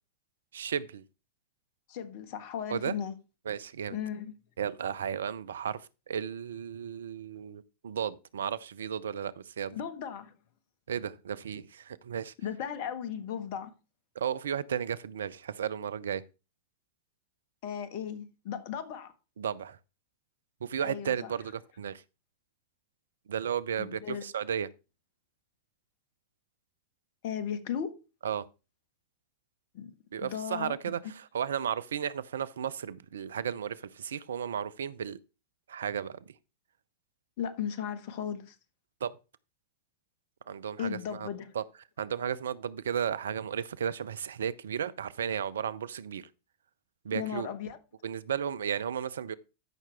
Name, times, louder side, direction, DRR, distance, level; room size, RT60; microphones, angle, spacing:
voice 1, 0.5-1.0 2.7-2.9 3.5-4.0 4.6-9.8 10.9-12.3 14.1-16.2 19.4-19.8 20.6-22.0 23.3-24.7 28.2-28.5 30.1-35.2 35.7-36.2 39.0-39.2 40.5-41.3 41.5-41.6 42.0-46.3 47.0-47.5 48.0-49.3, right 8 dB, 75° right, 0.6 m, -34 dB
voice 2, 1.9-3.1 3.9-4.3 9.7-10.3 12.4-13.7 17.6-19.1 20.8-21.3 23.8-24.2 27.2-28.0 29.7-29.9 30.2-30.9 37.4-38.5 40.8-41.5 47.1-47.8, left 8 dB, 55° left, 1.5 m, -36 dB
13.5 x 5.9 x 3.4 m
hypercardioid pair, 95°, 0 cm